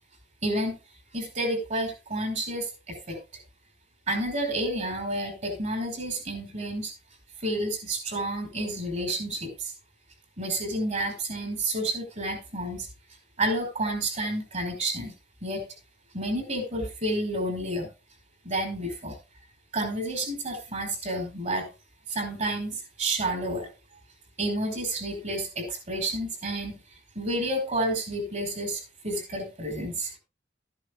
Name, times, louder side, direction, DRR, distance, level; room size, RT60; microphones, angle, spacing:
voice 1, 0.4-0.8 1.1-3.2 4.1-6.9 7.4-9.7 10.4-12.9 13.4-15.1 15.4-15.7 16.1-17.9 18.4-19.2 19.7-21.7 22.1-23.7 24.4-26.8 27.1-30.2, right 1 dB, 40° right, 5 dB, 5.1 m, -30 dB
13.5 x 11.0 x 2.4 m, 0.29 s
head